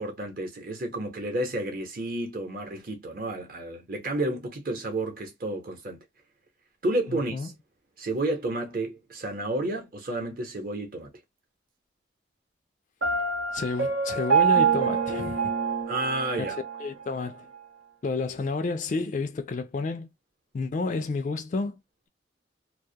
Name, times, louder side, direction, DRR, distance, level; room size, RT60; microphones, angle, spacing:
voice 1, 0.0-6.0 6.8-7.5 8.0-11.1 15.9-16.5, right 2 dB, 50° right, 0.8 m, -31 dB
voice 2, 7.1-7.5 13.5-15.5 16.8-17.5 18.0-20.1 20.5-21.7, left 3 dB, 40° left, 0.3 m, -30 dB
Piano, 13.0-16.9, right 6 dB, 90° right, 0.9 m, -25 dB
2.2 x 2.1 x 2.7 m
head